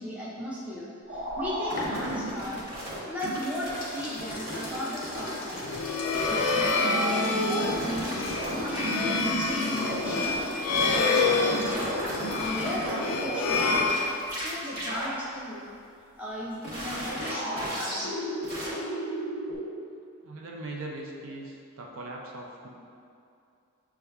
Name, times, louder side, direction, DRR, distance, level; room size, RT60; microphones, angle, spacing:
voice 1, 0.0-2.6 3.1-5.6 6.1-8.2 8.5-10.3 10.8-11.9 12.4-14.0 14.4-15.6 16.2-18.1, equal, 5° right, -8 dB, 0.5 m, -36 dB
sound 1, 1.1-3.4 3.6-4.8 5.0-5.8 6.1-10.4 10.7-14.0 14.3-14.5 14.8-15.1 16.6-19.6, right 1 dB, 40° right, 0.9 m, -33 dB
sound 2, 1.2-2.8 3.2-14.9, left 1 dB, 40° left, 0.6 m, -40 dB
sound 3, 5.6-14.6, left 4 dB, 80° left, 0.3 m, -28 dB
voice 2, 20.2-22.7, right 2 dB, 65° right, -1 dB, 0.4 m, -40 dB
6.5 x 2.3 x 2.3 m, 2.5 s
head